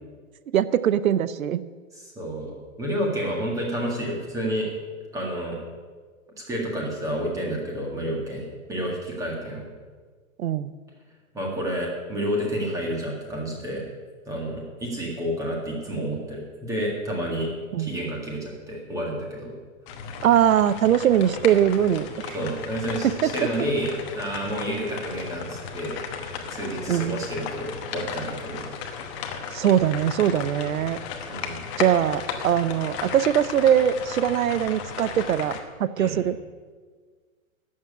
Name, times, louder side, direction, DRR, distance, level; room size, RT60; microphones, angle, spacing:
voice 1, 0.5-1.6 10.4-10.7 17.7-17.9 20.2-22.4 23.0-23.3 26.9-27.2 29.5-31.0 31.8-36.4, right 10 dB, 90° right, 15 dB, 0.8 m, -22 dB
voice 2, 1.9-4.7 5.1-5.6 6.4-9.6 11.3-13.8 14.3-17.5 17.8-19.6 22.3-26.0 26.5-28.6 31.3-31.6 36.0-36.2, equal, 10° right, -1 dB, 1.8 m, -30 dB
sound 1, 19.9-35.6, left 6 dB, 25° left, 1.0 m, -35 dB
12.0 x 7.5 x 9.6 m, 1.5 s
hypercardioid pair, 165°, 40 cm